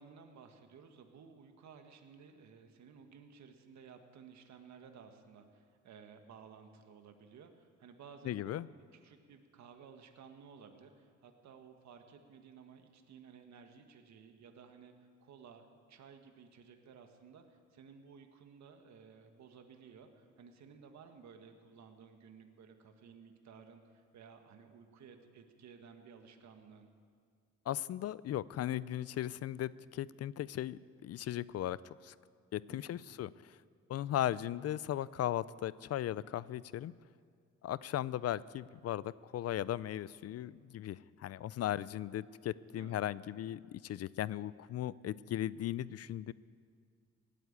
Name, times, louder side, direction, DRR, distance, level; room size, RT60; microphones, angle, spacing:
voice 1, 0.0-8.6 8.9-14.9 15.2-26.9 32.7-33.0 42.7-43.0, right 6 dB, 65° right, 6 dB, 1.5 m, -56 dB
voice 2, 8.3-8.7 27.7-31.8 32.0-32.1 32.5-33.5 33.9-36.9 37.6-46.3, left 12 dB, 55° left, 19 dB, 0.5 m, -37 dB
18.0 x 9.3 x 8.6 m, 2.1 s
cardioid pair, 90°, 30 cm